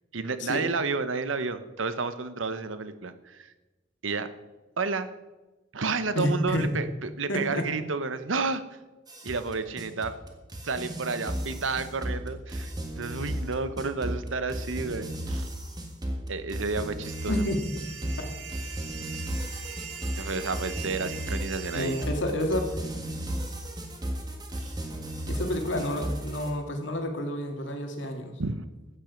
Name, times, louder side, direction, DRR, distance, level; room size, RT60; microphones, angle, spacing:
voice 1, 0.1-3.5 4.0-4.3 4.8-5.1 5.7-8.6 9.2-10.1 10.6-15.5 16.3-17.4 20.2-22.0 24.6-24.7 28.4-28.6, right 4 dB, 90° right, 12 dB, 0.9 m, -31 dB
voice 2, 6.1-6.7 7.3-7.7 17.3-17.6 18.2-18.3 21.7-22.6 25.3-28.4, left 1 dB, 75° left, 4 dB, 2.1 m, -29 dB
sound 1, 9.1-26.5, right 1 dB, 20° right, 1.7 m, -34 dB
sound 2, 17.0-22.0, right 6 dB, 65° right, 1.8 m, -41 dB
14.5 x 9.0 x 5.3 m, 1.1 s
head